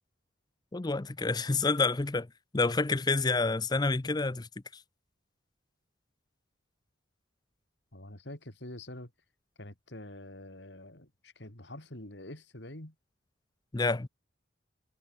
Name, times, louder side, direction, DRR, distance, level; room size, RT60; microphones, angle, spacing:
voice 1, 0.7-2.3 2.5-4.5 13.7-14.1, left 3 dB, 20° left, 0.5 m, -28 dB
voice 2, 7.9-9.1 9.6-12.9, left 1 dB, 65° left, 3.7 m, -46 dB
head